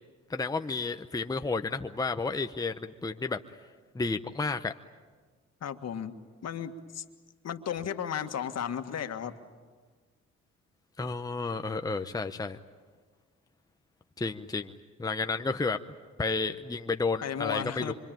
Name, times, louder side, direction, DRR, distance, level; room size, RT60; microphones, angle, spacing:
voice 1, 0.3-3.4 3.9-4.7 11.0-12.6 14.2-14.7 15.0-15.8 16.2-17.9, left 3 dB, 10° left, 7 dB, 0.8 m, -31 dB
voice 2, 5.6-6.1 6.4-7.0 7.4-9.3 17.2-17.9, left 8 dB, 55° left, 7 dB, 1.8 m, -34 dB
25.5 x 25.0 x 9.1 m, 1.5 s
cardioid pair, 90°, 30 cm